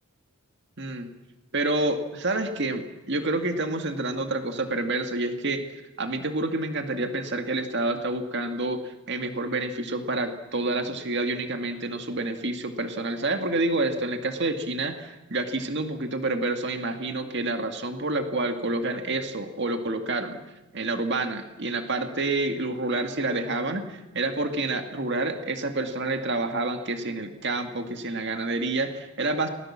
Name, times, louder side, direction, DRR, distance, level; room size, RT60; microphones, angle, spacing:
voice 1, 0.8-1.1 1.5-5.6 6.0-20.4 20.7-29.5, right 2 dB, 50° right, 6 dB, 2.0 m, -28 dB
29.5 x 20.5 x 7.4 m, 1.0 s
head